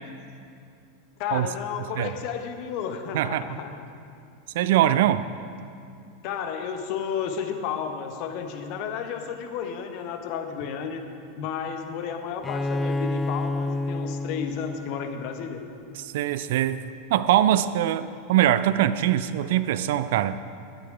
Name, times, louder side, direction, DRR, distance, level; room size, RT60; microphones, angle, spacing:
voice 1, 1.2-3.9 6.2-11.0 11.4-15.6, left 7 dB, 50° left, 6 dB, 1.1 m, -32 dB
voice 2, 3.1-3.4 4.5-5.2 16.0-16.8 17.1-20.4, right 12 dB, 60° right, 13 dB, 0.4 m, -22 dB
Bowed string instrument, 12.4-16.0, left 2 dB, 15° left, 0.4 m, -30 dB
12.0 x 9.3 x 5.0 m, 2.4 s
figure-of-eight pair, 85°, 0 cm